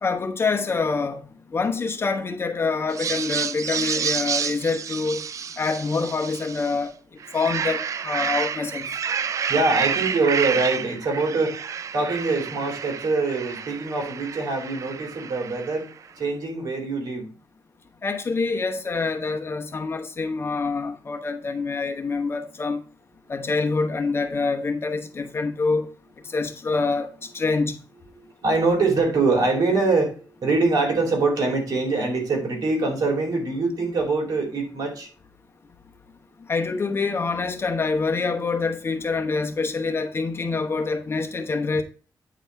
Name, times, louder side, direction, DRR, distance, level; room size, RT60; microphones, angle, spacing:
voice 1, 0.0-1.2 1.5-5.2 5.6-6.9 7.3-8.8 18.0-22.8 23.3-25.9 26.3-27.8 36.5-41.8, left 4 dB, 35° left, 1.0 m, -26 dB
sound 1, 2.9-6.8 7.2-15.9, right 7 dB, 50° right, 0.4 m, -29 dB
voice 2, 9.5-11.5 11.9-15.9 16.2-17.3 28.2-35.1, right 3 dB, 65° right, 2.6 m, -24 dB
9.1 x 4.1 x 4.6 m
cardioid pair, 115°, 7 cm